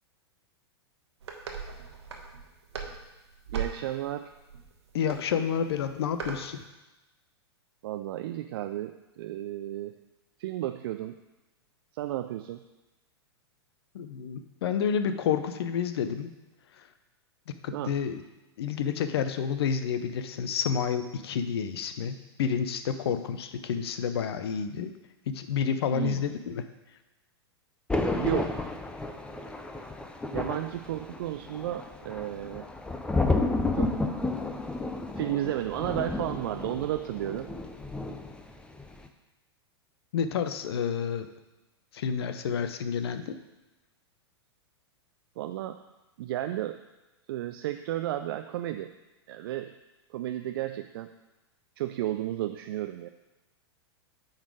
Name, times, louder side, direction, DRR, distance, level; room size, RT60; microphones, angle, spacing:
sound 1, 1.2-6.5, right 6 dB, 80° right, 1.2 m, -39 dB
voice 1, 3.5-4.3 7.8-10.0 10.4-11.2 11.9-12.6 17.7-17.9 25.9-26.4 28.1-28.7 30.3-32.7 33.7-34.2 35.2-37.5 45.4-45.8 46.2-46.8 47.3-48.9 49.3-49.7 50.1-51.1 51.8-53.1, right 13 dB, 60° right, 8 dB, 0.4 m, -33 dB
voice 2, 4.9-6.6 13.9-16.3 17.6-18.2 18.6-24.9 25.3-26.6 40.1-41.3 41.9-43.4, left 7 dB, 65° left, 9 dB, 0.7 m, -29 dB
Thunder, 27.9-38.5 38.8-39.1, left 2 dB, 5° left, 0.6 m, -31 dB
8.9 x 4.0 x 4.9 m, 1.0 s
hypercardioid pair, 105°, 14 cm